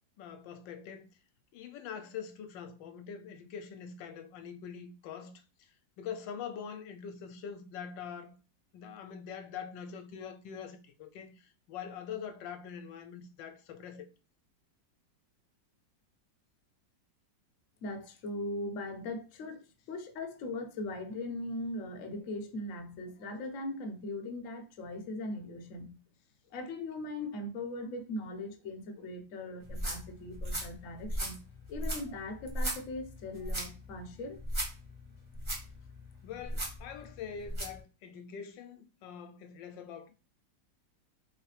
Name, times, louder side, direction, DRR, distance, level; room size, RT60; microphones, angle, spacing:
voice 1, 0.2-1.1 1.5-5.3 5.6-5.7 6.0-8.4 8.7-14.1 36.2-40.2, left 7 dB, 85° left, 1.3 m, -44 dB
voice 2, 17.8-26.0 26.5-31.4 31.7-34.4, left 2 dB, 55° left, 1.0 m, -40 dB
sound 1, 29.6-37.8, equal, 20° right, 0.8 m, -38 dB
3.7 x 3.2 x 3.2 m
omnidirectional pair, 2.0 m